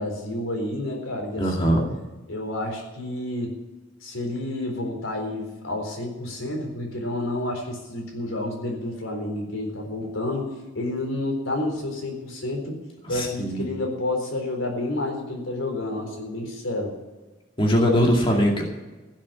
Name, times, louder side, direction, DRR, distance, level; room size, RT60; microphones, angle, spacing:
voice 1, 0.0-1.8 2.3-3.6 4.0-12.8 13.1-16.9, left 1 dB, 85° left, 2 dB, 4.1 m, -30 dB
voice 2, 1.4-1.8 13.0-13.6 17.6-18.6, equal, 25° left, 0 dB, 2.3 m, -21 dB
16.0 x 7.5 x 8.5 m, 1.2 s
head